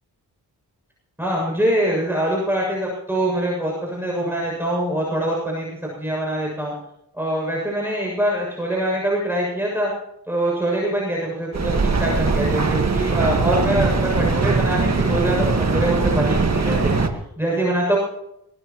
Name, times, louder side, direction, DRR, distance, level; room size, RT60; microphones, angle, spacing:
voice 1, 1.2-6.7 7.1-9.9 10.3-16.9 17.4-18.0, right 1 dB, 5° right, -3 dB, 7.1 m, -24 dB
Mechanical fan, 11.5-17.1, right 4 dB, 40° right, 1.8 m, -20 dB
22.0 x 20.0 x 3.1 m, 0.81 s
cardioid pair, 70°, 39 cm